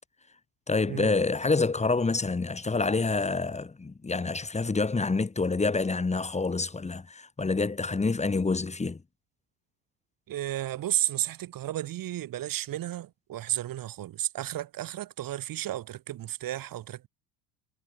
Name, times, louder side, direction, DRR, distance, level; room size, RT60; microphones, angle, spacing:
voice 1, 0.7-9.0, left 3 dB, 15° left, 3.3 m, -27 dB
voice 2, 10.3-17.1, right 13 dB, 50° right, 3.5 m, -33 dB
cardioid pair, 125°, 42 cm